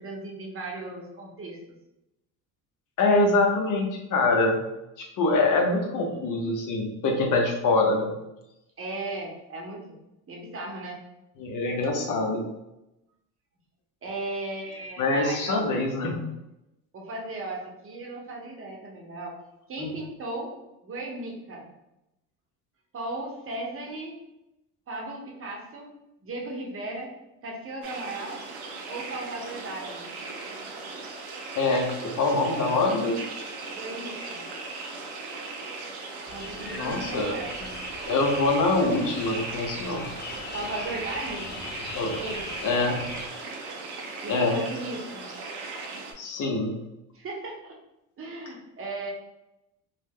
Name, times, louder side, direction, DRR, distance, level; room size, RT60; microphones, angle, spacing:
voice 1, 0.0-1.6 8.8-10.0 10.3-11.0 14.0-15.7 16.9-19.4 19.7-20.5 20.8-21.7 22.9-24.2 24.9-26.0 26.2-27.1 27.4-28.4 28.9-30.1 33.7-34.5 36.3-37.8 40.5-41.5 42.1-42.5 44.2-45.3 47.1-47.8 48.2-49.1, right 2 dB, 30° right, -1 dB, 0.9 m, -36 dB
voice 2, 3.0-4.6 5.0-8.1 11.4-12.4 15.0-16.2 19.8-19.9 31.5-33.2 36.7-37.4 38.1-40.1 41.9-42.1 42.6-43.0 44.3-44.6 46.2-46.8, left 2 dB, 45° left, 2 dB, 0.8 m, -24 dB
sound 1, 27.8-46.1, right 3 dB, 60° right, 0.6 m, -38 dB
suburban atmos many birds, 36.3-43.3, left 4 dB, 25° left, 0.4 m, -41 dB
2.3 x 2.1 x 3.4 m, 0.91 s
hypercardioid pair, 70°, 43 cm